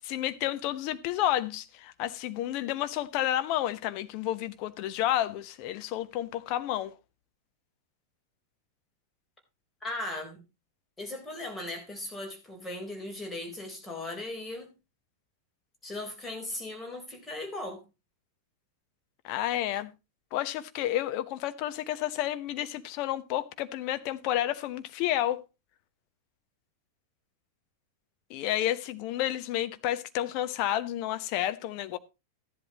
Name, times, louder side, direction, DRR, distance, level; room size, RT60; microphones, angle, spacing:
voice 1, 0.0-6.9 19.2-19.9 20.3-25.4 28.3-32.0, left 13 dB, 45° left, 1.0 m, -30 dB
voice 2, 9.8-10.4 11.0-14.7 15.8-17.8, left 2 dB, 15° left, 4.0 m, -38 dB
14.5 x 11.0 x 3.0 m
figure-of-eight pair, 90°, 0 cm